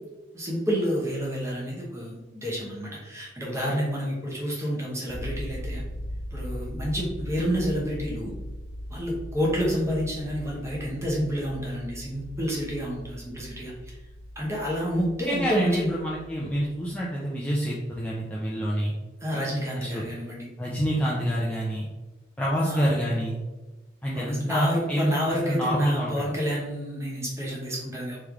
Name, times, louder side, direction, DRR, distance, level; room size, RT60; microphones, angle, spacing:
voice 1, 0.3-5.8 6.3-8.3 8.9-13.7 14.4-15.9 19.2-20.5 22.7-23.1 24.1-28.2, equal, 15° right, -3 dB, 0.9 m, -29 dB
sound 1, 5.1-17.0, equal, 70° left, 0.7 m, -39 dB
voice 2, 14.9-18.9 19.8-20.0 20.6-21.9 22.4-23.4 24.0-26.1, equal, 5° left, -6 dB, 0.5 m, -27 dB
3.3 x 3.2 x 3.6 m, 1.1 s
head